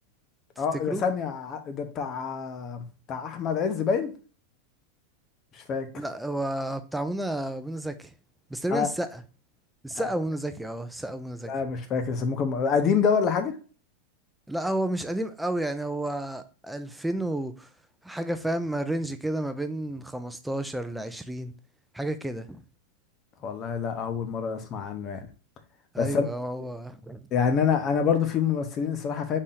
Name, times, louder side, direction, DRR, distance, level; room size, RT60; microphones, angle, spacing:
voice 1, 0.6-4.1 5.5-5.9 8.7-8.9 9.9-10.1 11.4-13.6 23.4-25.3 26.0-26.2 27.3-29.4, left 6 dB, 35° left, 0.9 m, -27 dB
voice 2, 5.9-8.1 8.5-9.2 9.8-11.5 14.5-17.7 18.0-21.5 21.9-22.6 25.9-27.3, right 1 dB, 5° right, 0.6 m, -31 dB
4.2 x 3.0 x 3.9 m
hypercardioid pair, 115°, 0 cm